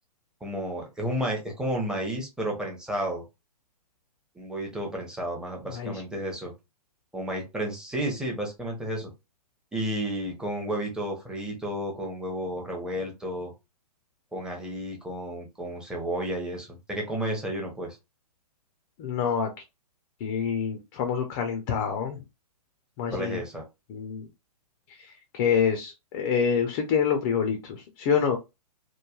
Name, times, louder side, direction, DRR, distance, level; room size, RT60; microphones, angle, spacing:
voice 1, 0.4-3.2 4.4-6.5 7.1-9.1 9.7-13.5 14.3-18.0 23.1-23.6, right 1 dB, 5° right, -1 dB, 0.7 m, -32 dB
voice 2, 5.7-6.0 19.0-19.5 20.2-22.2 23.0-23.4 23.9-24.2 24.9-28.4, left 7 dB, 30° left, 5 dB, 0.5 m, -27 dB
3.1 x 2.2 x 2.3 m, 0.24 s
hypercardioid pair, 130°, 20 cm